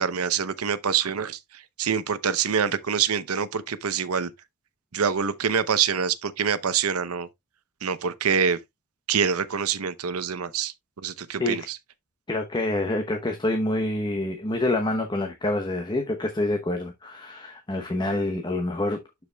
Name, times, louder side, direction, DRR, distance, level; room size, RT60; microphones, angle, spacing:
voice 1, 0.0-4.3 4.9-7.3 7.8-8.6 9.1-11.8, right 7 dB, 85° right, 0.7 m, -26 dB
voice 2, 12.3-19.0, left 2 dB, 20° left, 0.8 m, -27 dB
12.0 x 4.8 x 2.3 m
head